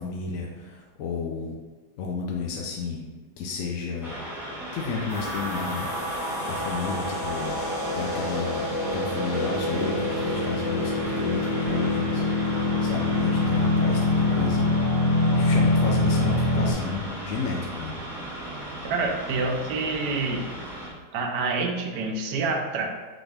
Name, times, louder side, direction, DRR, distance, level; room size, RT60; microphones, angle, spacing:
voice 1, 0.0-1.5 2.0-3.0 3.4-4.2 4.7-7.6 7.9-15.0 15.3-18.0, left 4 dB, 70° left, -1 dB, 0.8 m, -32 dB
sound 1, 4.0-20.9, right 1 dB, ahead, 0.7 m, -37 dB
sound 2, 5.1-16.7, left 2 dB, 50° left, 1.6 m, -25 dB
voice 2, 18.8-20.4 21.1-22.9, right 3 dB, 80° right, 2 dB, 1.2 m, -27 dB
6.0 x 2.4 x 3.3 m, 1.4 s
omnidirectional pair, 1.8 m